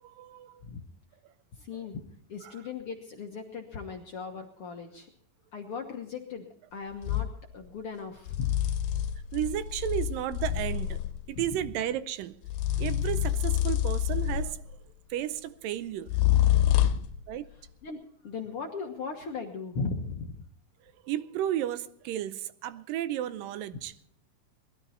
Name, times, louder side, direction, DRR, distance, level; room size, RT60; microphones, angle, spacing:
voice 1, 0.0-0.6 1.2-1.3 2.4-2.6 9.3-11.0 11.3-12.4 12.8-14.8 15.1-16.2 17.3-17.5 20.8-24.1, right 11 dB, 80° right, 2.3 m, -33 dB
voice 2, 1.6-2.0 2.3-5.1 5.5-6.4 6.7-7.3 7.5-8.5 16.7-17.1 17.8-20.4, left 4 dB, 60° left, 1.6 m, -37 dB
sound 1, 7.0-7.4 8.3-11.3 12.5-14.7 16.1-17.2, left 12 dB, 90° left, 2.5 m, -27 dB
20.0 x 13.0 x 4.3 m
omnidirectional pair, 4.0 m